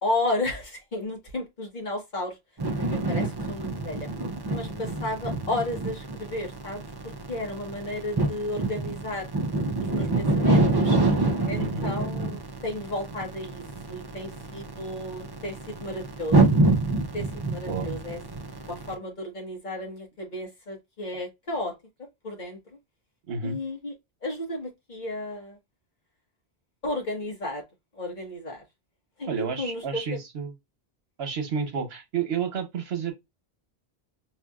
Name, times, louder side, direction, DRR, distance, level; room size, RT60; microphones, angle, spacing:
voice 1, 0.0-2.3 3.1-4.1 4.5-6.8 7.3-9.3 9.8-11.0 11.5-16.4 17.1-18.2 18.7-21.8 22.2-22.6 23.4-23.9 24.2-25.6 26.8-27.6 27.9-28.6 29.2-30.2, left 1 dB, 45° left, 1.4 m, -33 dB
sound 1, 2.6-18.9, right 2 dB, 35° right, 0.4 m, -26 dB
voice 2, 23.3-23.6 29.3-30.5 31.2-33.1, right 6 dB, 75° right, 1.2 m, -30 dB
4.7 x 2.7 x 2.3 m
omnidirectional pair, 1.1 m